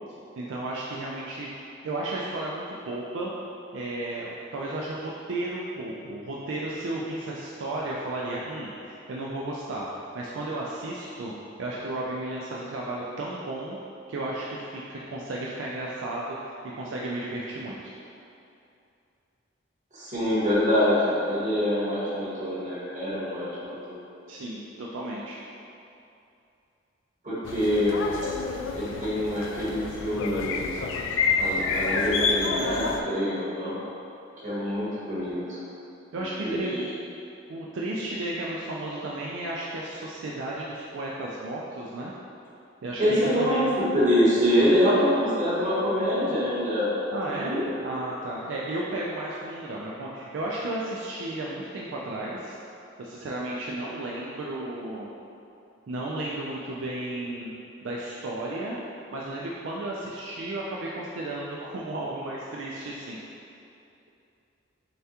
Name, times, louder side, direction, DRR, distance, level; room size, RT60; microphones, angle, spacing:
voice 1, 0.4-1.5 1.8-3.3 3.7-9.9 10.1-11.3 11.6-13.8 14.1-17.9 24.3-25.4 36.1-36.9 37.5-42.1 42.8-43.6 47.1-47.5 47.8-52.6 53.0-55.1 55.9-57.5 57.8-58.8 59.1-63.2, right 2 dB, 70° right, -4 dB, 0.4 m, -33 dB
voice 2, 19.9-24.0 27.2-28.0 28.7-30.7 31.3-33.8 34.4-35.6 36.1-36.6 43.0-43.7 43.9-47.1 47.4-47.7, equal, 40° right, -11 dB, 1.5 m, -25 dB
sound 1, 27.4-33.0, left 4 dB, 75° left, 0.3 m, -28 dB
6.7 x 2.3 x 2.8 m, 2.7 s
head